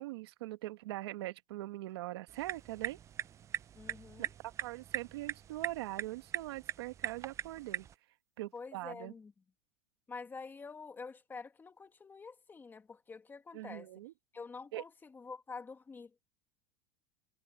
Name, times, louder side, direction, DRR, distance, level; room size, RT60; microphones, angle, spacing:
voice 1, 0.0-3.0 4.2-7.9 8.4-9.1 13.5-14.1 14.7-14.8, right 17 dB, 80° right, 1.8 m, -42 dB
sound 1, 2.3-7.9, right 9 dB, 20° right, 0.5 m, -41 dB
voice 2, 3.7-4.3 8.5-9.3 10.1-13.9 14.3-16.1, left 4 dB, 15° left, 2.2 m, -47 dB
supercardioid pair, 140°, 13 cm